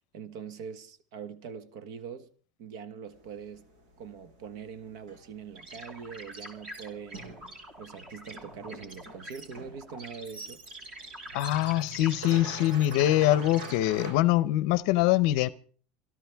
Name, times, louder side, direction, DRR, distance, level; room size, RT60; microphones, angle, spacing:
voice 1, 0.1-2.3 2.6-3.7 4.0-7.4 7.8-10.6, right 6 dB, 60° right, 1.3 m, -43 dB
sound 1, 3.1-14.1, right 2 dB, 85° right, 7.4 m, -46 dB
sound 2, 5.5-13.7, right 1 dB, 25° right, 2.8 m, -45 dB
voice 2, 11.3-15.5, left 14 dB, 55° left, 0.6 m, -24 dB
26.0 x 13.0 x 3.5 m
cardioid pair, 175°, 4 cm